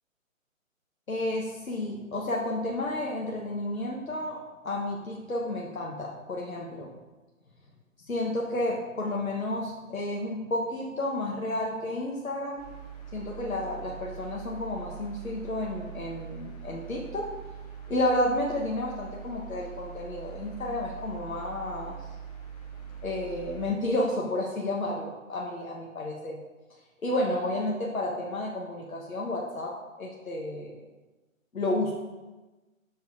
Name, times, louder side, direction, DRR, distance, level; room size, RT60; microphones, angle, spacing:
voice 1, 1.1-6.9 8.1-12.6 13.1-17.3 17.9-22.0 23.0-26.4 27.0-30.8 31.5-31.9, left 1 dB, 80° left, -2 dB, 1.3 m, -31 dB
sound 1, 12.6-23.7, right 8 dB, 30° left, 1.1 m, -43 dB
6.9 x 4.6 x 4.9 m, 1.2 s
figure-of-eight pair, 145°, 41 cm